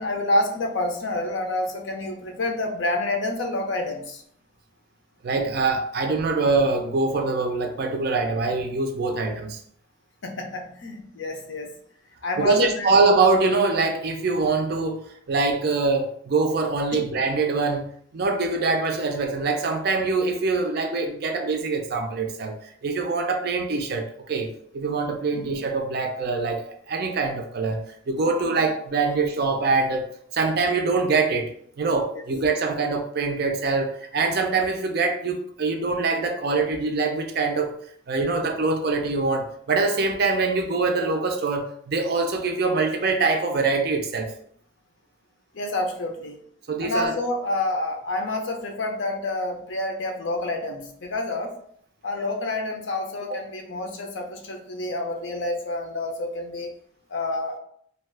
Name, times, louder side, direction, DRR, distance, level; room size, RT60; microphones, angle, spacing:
voice 1, 0.0-4.2 10.2-11.7 12.2-12.9 25.3-25.5 32.1-32.2 45.5-46.4 46.8-51.6 52.0-56.7 57.1-57.6, left 2 dB, 70° left, 3 dB, 0.6 m, -28 dB
voice 2, 5.2-9.6 12.4-17.9 18.1-24.5 24.7-37.7 38.1-44.3 46.7-47.2, right 3 dB, 55° right, 4 dB, 0.4 m, -24 dB
2.7 x 2.3 x 3.3 m, 0.64 s
head